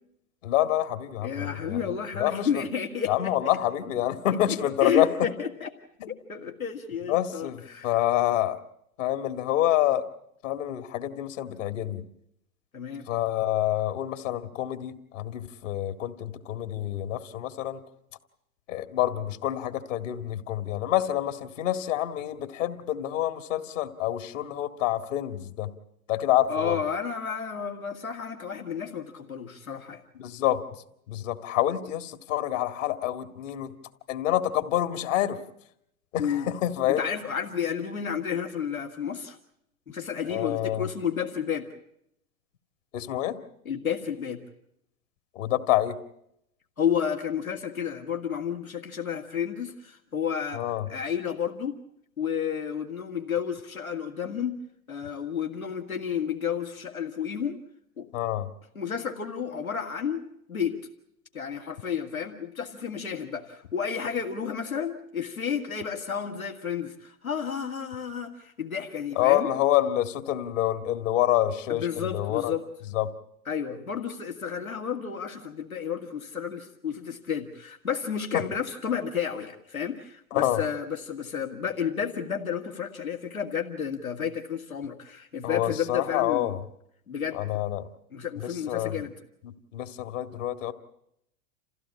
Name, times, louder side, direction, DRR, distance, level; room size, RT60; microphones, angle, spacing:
voice 1, 0.4-1.8 2.2-2.6 3.1-5.1 6.0-6.1 7.1-8.6 9.0-10.1 10.4-12.0 13.1-17.8 18.7-25.7 26.1-26.8 30.2-30.6 31.1-33.7 34.1-35.4 36.1-37.0 40.3-40.8 42.9-43.4 45.4-46.0 50.5-50.9 58.1-58.5 69.2-72.5 72.9-73.1 78.3-78.4 80.3-80.6 85.4-86.6 87.3-87.9 88.4-89.0 89.4-90.7, left 13 dB, 65° left, 9 dB, 2.0 m, -27 dB
voice 2, 1.2-3.3 4.5-5.7 6.1-8.0 12.7-13.1 26.5-30.0 36.2-36.5 37.0-39.4 39.9-41.7 43.7-44.4 46.8-50.6 50.9-51.8 52.2-54.6 54.9-57.6 58.0-58.1 58.8-60.8 61.3-69.5 71.7-72.7 73.5-86.6 87.1-87.4 88.1-89.1, left 7 dB, 90° left, 3 dB, 2.1 m, -31 dB
28.0 x 16.0 x 8.5 m, 0.77 s
figure-of-eight pair, 90°, 41 cm